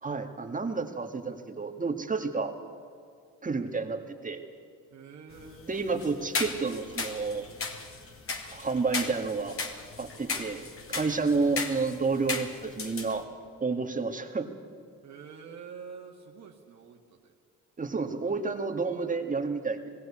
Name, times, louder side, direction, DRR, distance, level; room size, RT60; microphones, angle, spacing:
voice 1, 0.0-2.5 3.4-4.4 5.7-7.5 8.5-9.6 10.0-10.6 10.9-13.3 13.6-14.5 17.8-19.9, right 4 dB, 25° right, 5 dB, 1.9 m, -30 dB
voice 2, 4.9-5.7 11.3-11.7 15.0-17.3, right 6 dB, 65° right, 1 dB, 1.7 m, -47 dB
sound 1, 5.3-13.2, left 4 dB, 45° left, 2.2 m, -37 dB
20.0 x 15.5 x 8.6 m, 2.3 s
cardioid pair, 90°, 30 cm